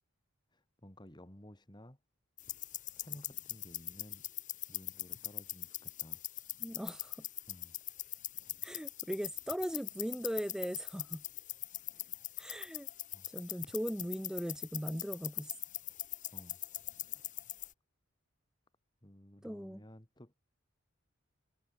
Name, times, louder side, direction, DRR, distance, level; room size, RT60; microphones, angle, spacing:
voice 1, 0.5-2.0 2.9-4.3 4.7-6.2 7.5-7.8 12.6-12.7 13.1-13.3 16.3-16.6 16.9-17.2 19.0-20.3, equal, 20° left, 2.8 m, -55 dB
sound 1, 2.4-17.7, left 14 dB, 35° left, 1.5 m, -42 dB
voice 2, 6.6-7.2 8.6-11.2 12.4-12.9 13.3-15.5 19.4-19.8, equal, 5° right, 0.5 m, -39 dB
head